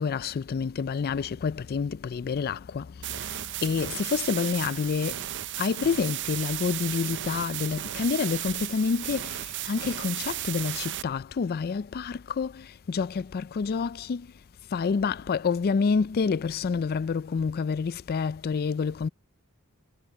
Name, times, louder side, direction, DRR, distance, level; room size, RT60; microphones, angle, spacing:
voice 1, 0.0-2.9 3.2-5.2 5.6-14.3 14.7-19.1, left 5 dB, 45° left, 0.4 m, -28 dB
sound 1, 3.0-11.0, right 13 dB, 55° right, 0.5 m, -34 dB
head